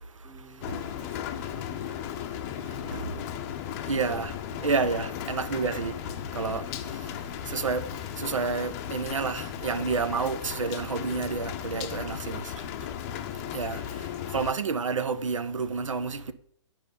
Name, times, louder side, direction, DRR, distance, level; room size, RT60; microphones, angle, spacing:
voice 1, 0.0-2.1 2.5-3.3 6.8-7.0 10.5-11.6 12.2-12.5, right 3 dB, 15° right, 1.0 m, -52 dB
Rain, 0.6-14.5, left 11 dB, 30° left, 0.7 m, -36 dB
voice 2, 3.9-4.3 4.6-5.9 6.3-6.6 7.5-7.8 8.2-12.4 13.5-13.8 14.3-16.3, right 4 dB, 80° right, 0.8 m, -29 dB
9.6 x 5.4 x 5.4 m
hypercardioid pair, 135°, 16 cm